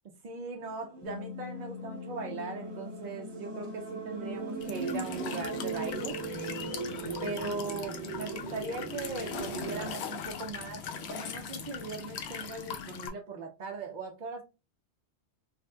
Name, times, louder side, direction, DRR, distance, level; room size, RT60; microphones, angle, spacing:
voice 1, 0.2-6.2 7.2-14.4, right 3 dB, 55° right, 0.5 m, -39 dB
sound 1, 0.6-9.9, right 3 dB, 25° right, 0.9 m, -39 dB
Bass guitar, 1.0-7.3, left 10 dB, 10° left, 0.4 m, -47 dB
Walk footsteps / Chirp tweet / Stream, 4.6-13.1, left 7 dB, 75° left, 0.8 m, -40 dB
3.2 x 2.7 x 2.2 m
omnidirectional pair, 1.1 m